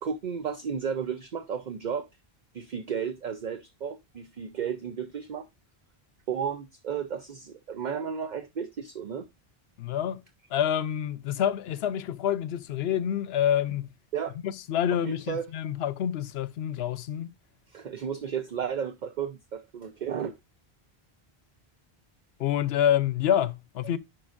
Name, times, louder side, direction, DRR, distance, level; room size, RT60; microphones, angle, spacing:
voice 1, 0.0-2.1 2.5-5.5 6.3-9.3 14.1-14.4 15.0-15.5 17.7-20.4, right 7 dB, 50° right, 0.7 m, -33 dB
voice 2, 9.8-10.2 10.5-13.9 14.4-17.3 22.4-24.0, left 10 dB, 80° left, 0.8 m, -27 dB
10.5 x 4.6 x 2.4 m
omnidirectional pair, 1.1 m